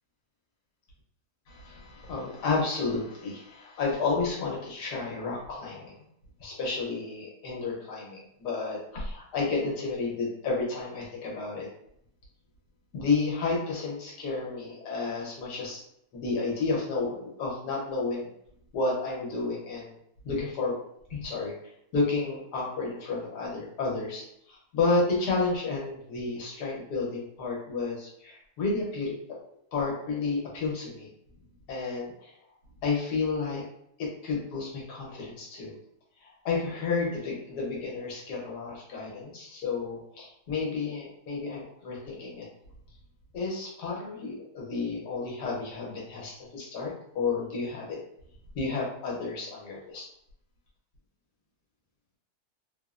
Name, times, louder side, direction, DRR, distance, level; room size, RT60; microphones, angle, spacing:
voice 1, 1.5-6.0 6.4-11.7 12.9-15.8 16.1-18.3 18.7-19.9 20.2-20.8 21.1-21.5 21.9-29.1 29.7-31.1 31.7-32.3 32.8-33.6 34.0-35.7 36.2-42.5 43.3-48.0 48.5-50.1, left 3 dB, 85° left, -3 dB, 1.4 m, -31 dB
3.4 x 2.0 x 2.4 m, 0.73 s
omnidirectional pair, 1.7 m